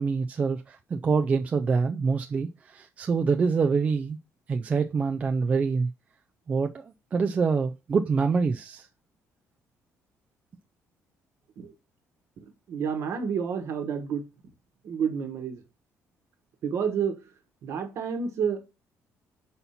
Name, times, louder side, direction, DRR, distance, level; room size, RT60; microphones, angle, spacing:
voice 1, 0.0-4.2 4.5-5.9 6.5-8.9, right 5 dB, 25° right, 0.3 m, -26 dB
voice 2, 12.4-14.2 14.8-15.6 16.6-17.2 17.6-18.6, right 7 dB, 55° right, 1.2 m, -29 dB
5.6 x 4.1 x 5.7 m
cardioid pair, 175°, 6 cm